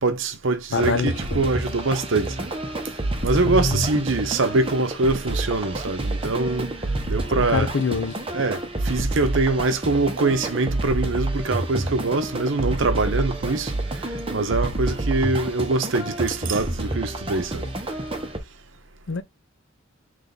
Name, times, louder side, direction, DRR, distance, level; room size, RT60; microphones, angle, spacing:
voice 1, 0.0-2.5 3.2-6.7 7.1-7.7 8.3-8.6 8.9-13.7 14.3-17.6, right 3 dB, 70° right, 0.8 m, -23 dB
voice 2, 0.7-1.5 3.3-3.9 7.4-8.2 19.1-19.2, left 4 dB, 65° left, 0.5 m, -25 dB
sound 1, 0.8-18.4, right 2 dB, 30° right, 0.9 m, -28 dB
3.5 x 3.3 x 3.9 m
head